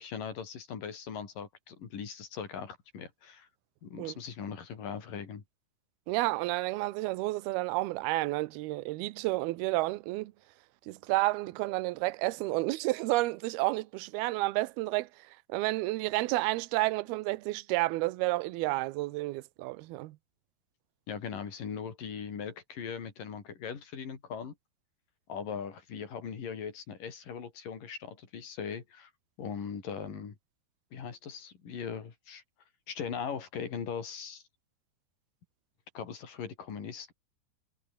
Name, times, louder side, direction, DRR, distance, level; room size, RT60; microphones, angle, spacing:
voice 1, 0.0-3.5 3.8-5.4 21.1-24.5 25.3-29.1 29.4-30.3 30.9-32.4 32.9-34.4 35.9-37.1, left 7 dB, 50° left, 5.0 m, -40 dB
voice 2, 6.1-10.3 10.9-15.1 15.5-20.2, right 20 dB, 75° right, 2.5 m, -30 dB
omnidirectional pair, 5.0 m